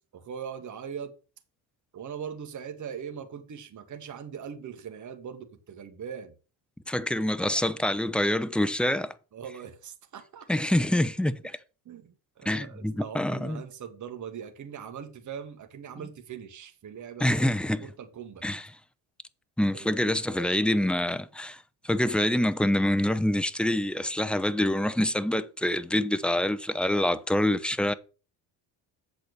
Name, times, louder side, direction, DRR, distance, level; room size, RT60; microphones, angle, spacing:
voice 1, 0.1-1.1 1.9-6.3 7.3-7.7 9.3-10.5 11.8-17.3 17.8-18.5 19.7-21.0, right 7 dB, 35° right, 1.5 m, -41 dB
voice 2, 6.9-9.1 10.5-11.4 12.5-13.6 17.2-17.8 18.4-18.6 19.6-27.9, left 1 dB, ahead, 0.6 m, -26 dB
7.8 x 4.3 x 6.8 m
supercardioid pair, 95°, 48 cm